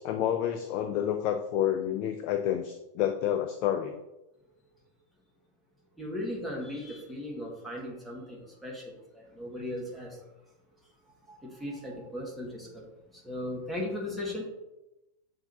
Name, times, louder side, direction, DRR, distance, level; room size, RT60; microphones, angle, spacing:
voice 1, 0.0-4.0, left 10 dB, 40° left, 0.3 m, -29 dB
voice 2, 6.0-10.2 11.0-14.4, left 1 dB, ahead, 1.3 m, -37 dB
7.1 x 2.7 x 2.7 m
figure-of-eight pair, 90°, 0 cm